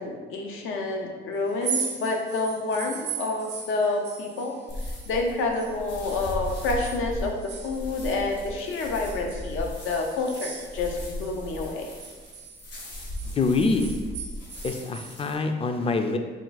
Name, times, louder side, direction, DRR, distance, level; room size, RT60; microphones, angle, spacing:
voice 1, 0.0-4.5 5.1-11.9, left 3 dB, 85° left, 2 dB, 0.6 m, -28 dB
sound 1, 1.5-5.8 6.1-8.6 9.0-11.4 11.7-15.2, right 7 dB, 60° right, 0.4 m, -38 dB
sound 2, 4.7-15.3, left 1 dB, 65° left, 1.3 m, -37 dB
voice 2, 13.3-13.9 14.6-16.2, left 3 dB, 30° left, 6 dB, 0.4 m, -25 dB
4.4 x 2.3 x 3.9 m, 1.4 s
cardioid pair, 90°, 20 cm